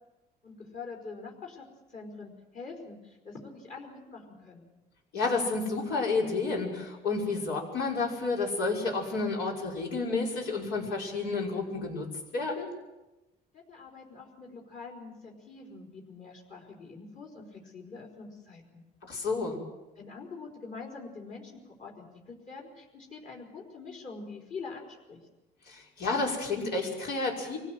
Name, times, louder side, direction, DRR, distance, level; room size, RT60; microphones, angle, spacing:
voice 1, 0.4-4.7 13.5-18.8 20.0-25.2, left 4 dB, 50° left, -1 dB, 4.7 m, -45 dB
voice 2, 5.1-12.1 12.3-12.7 19.1-19.6 25.7-27.6, left 3 dB, 80° left, -1 dB, 5.9 m, -30 dB
24.5 x 16.5 x 7.9 m, 1.0 s
cardioid pair, 110°, 17 cm